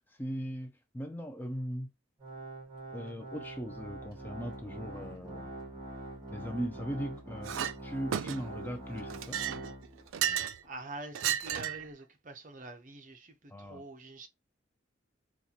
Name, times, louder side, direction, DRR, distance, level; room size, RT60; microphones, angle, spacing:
voice 1, 0.0-1.9 2.9-5.5 6.3-9.4 13.5-13.8, equal, 10° left, 0.4 m, -39 dB
Organ, 2.2-10.2 10.6-10.7 11.4-11.5, right 1 dB, 25° right, 2.0 m, -44 dB
Chink clink, 7.5-7.8 8.1-8.6 9.1-10.6 11.2-11.9, right 10 dB, 85° right, 0.4 m, -33 dB
voice 2, 10.6-14.3, right 2 dB, 40° right, 0.7 m, -46 dB
4.2 x 2.4 x 2.8 m
head